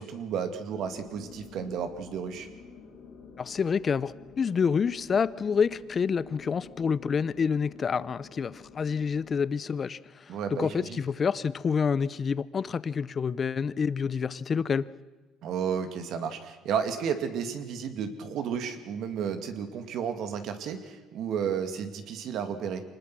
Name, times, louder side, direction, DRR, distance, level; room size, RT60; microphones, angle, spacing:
voice 1, 0.0-2.5 10.3-11.0 15.4-22.8, right 7 dB, 65° right, 8 dB, 2.4 m, -32 dB
sound 1, 0.7-9.4, left 6 dB, 65° left, 3.5 m, -50 dB
voice 2, 3.4-14.9, left 6 dB, 35° left, 18 dB, 0.7 m, -28 dB
25.5 x 20.0 x 6.2 m, 1.2 s
cardioid pair, 115°, 0 cm